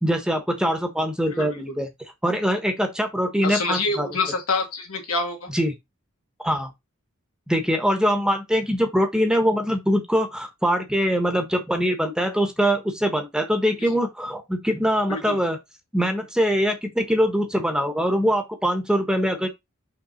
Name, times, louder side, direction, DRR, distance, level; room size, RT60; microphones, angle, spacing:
voice 1, 0.0-1.9 2.2-4.1 5.5-5.7 6.4-6.7 7.5-15.6 15.9-19.5, equal, 5° right, 1.1 m, -23 dB
voice 2, 1.3-1.7 3.4-5.5 13.8-13.9 15.1-15.4, left 3 dB, 90° left, 2.7 m, -27 dB
5.8 x 3.5 x 5.6 m
head